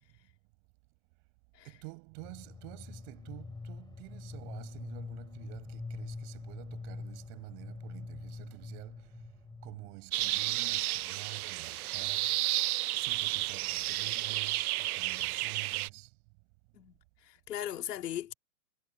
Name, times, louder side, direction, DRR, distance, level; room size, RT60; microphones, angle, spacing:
voice 1, 1.6-9.0 9.6-12.3 12.9-16.1, right 35 dB, 45° right, 7.8 m, -48 dB
sound 1, 2.2-10.0, left 3 dB, 10° left, 7.4 m, -44 dB
sound 2, 10.1-15.9, right 17 dB, 65° right, 0.7 m, -32 dB
voice 2, 17.2-18.3, left 11 dB, 75° left, 3.9 m, -38 dB
hypercardioid pair, 135°, 49 cm